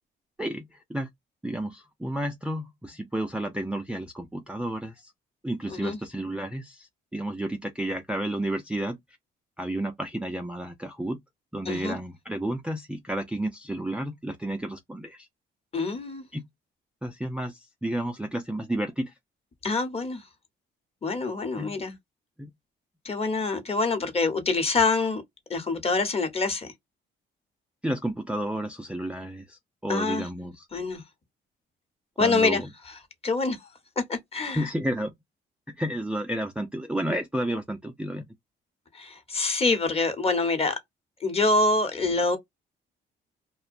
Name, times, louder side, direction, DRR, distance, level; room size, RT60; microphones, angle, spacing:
voice 1, 0.4-1.1 1.4-5.1 5.4-9.0 9.6-11.2 11.5-15.3 16.3-16.4 17.0-19.1 21.6-21.8 22.4-22.5 27.8-30.7 32.2-32.7 34.5-35.1 35.7-38.3, right 1 dB, 5° right, 0.4 m, -31 dB
voice 2, 11.6-12.0 15.7-16.2 19.6-20.2 21.0-22.0 23.0-25.2 25.5-26.7 29.9-30.3 30.7-31.0 32.2-32.6 33.2-33.7 34.1-34.7 38.9-40.8 41.2-42.4, left 3 dB, 30° left, 0.9 m, -25 dB
2.4 x 2.1 x 2.5 m
cardioid pair, 90°, 20 cm